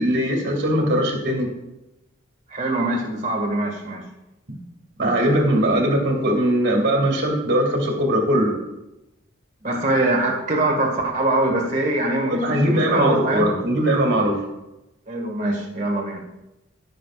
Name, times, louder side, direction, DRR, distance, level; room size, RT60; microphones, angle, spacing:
voice 1, 0.0-1.5 5.0-8.6 12.2-14.5, right 1 dB, 60° right, 0 dB, 2.6 m, -20 dB
voice 2, 2.5-4.1 9.6-13.5 15.1-16.2, right 1 dB, 40° right, -1 dB, 2.0 m, -23 dB
16.0 x 6.8 x 2.5 m, 0.94 s
head